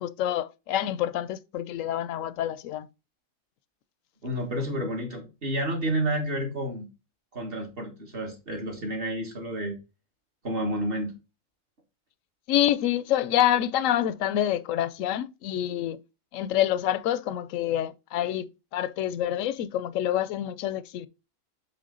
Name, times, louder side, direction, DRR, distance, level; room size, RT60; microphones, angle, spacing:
voice 1, 0.0-2.9 12.5-16.0 16.3-21.1, left 11 dB, 75° left, 0.9 m, -27 dB
voice 2, 4.2-6.9 7.3-9.8 10.4-11.2, right 1 dB, 45° right, 1.7 m, -30 dB
7.7 x 3.4 x 3.8 m
omnidirectional pair, 1.4 m